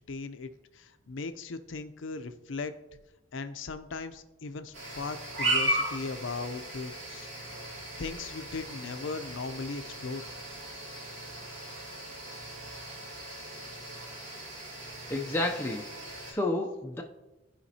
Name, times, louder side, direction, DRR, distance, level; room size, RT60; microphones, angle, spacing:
voice 1, 0.0-2.7 3.3-7.3 8.0-10.3, left 4 dB, 75° left, 10 dB, 0.6 m, -38 dB
sound 1, 4.7-16.3, right 1 dB, 90° right, 2.2 m, -36 dB
voice 2, 15.1-15.9 16.3-17.0, left 2 dB, 10° left, 0 dB, 0.5 m, -30 dB
14.5 x 5.1 x 2.8 m, 1.0 s
head